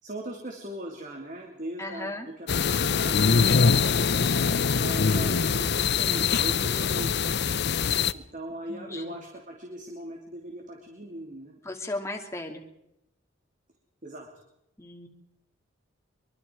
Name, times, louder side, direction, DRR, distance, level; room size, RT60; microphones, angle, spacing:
voice 1, 0.0-3.9 4.7-7.4 8.1-11.5 14.0-14.3, right 1 dB, 40° right, 1 dB, 3.1 m, -39 dB
voice 2, 1.8-2.3 8.7-9.1 11.6-12.6 14.8-15.1, left 2 dB, 15° left, 3 dB, 2.7 m, -36 dB
sound 1, 2.5-8.1, left 5 dB, 60° left, 0.7 m, -23 dB
24.0 x 23.5 x 4.7 m, 0.81 s
head